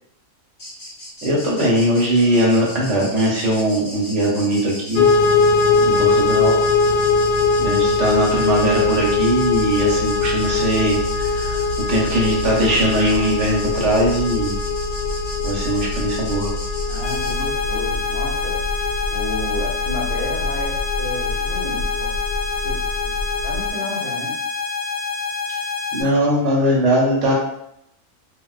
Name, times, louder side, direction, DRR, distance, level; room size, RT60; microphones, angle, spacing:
sound 1, 0.6-17.4, equal, 50° left, 0.7 m, -37 dB
voice 1, 1.2-5.1 6.0-6.5 7.6-11.6 11.9-14.5 15.4-16.5 25.9-27.3, right 1 dB, 60° right, -3 dB, 1.0 m, -20 dB
sound 2, 5.0-23.7, left 4 dB, 90° left, 1.0 m, -21 dB
voice 2, 5.7-6.0 16.9-22.1 22.6-23.1 23.4-24.4, left 1 dB, 25° left, -8 dB, 1.0 m, -32 dB
sound 3, 17.0-26.0, left 4 dB, 30° right, 0.6 m, -27 dB
3.6 x 2.4 x 2.3 m, 0.77 s
omnidirectional pair, 1.5 m